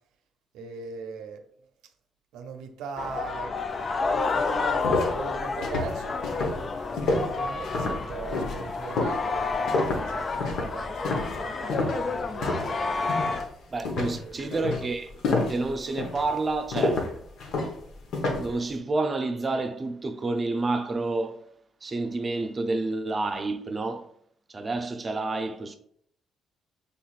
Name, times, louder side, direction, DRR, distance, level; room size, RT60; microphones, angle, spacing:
voice 1, 0.5-1.4 2.3-3.5 3.8-13.0 14.0-14.6, right 5 dB, 85° right, 0.6 m, -40 dB
sound 1, 3.0-13.4, left 4 dB, 40° left, 0.4 m, -30 dB
sound 2, 3.9-4.0 4.3-12.8 13.1-13.5 13.8-18.6, left 2 dB, 75° left, 1.0 m, -29 dB
voice 2, 13.7-15.1 15.5-17.0 18.3-21.4 21.8-24.1 24.5-25.8, right 3 dB, 35° right, 0.6 m, -29 dB
5.6 x 3.5 x 2.4 m
cardioid pair, 75°, 0 cm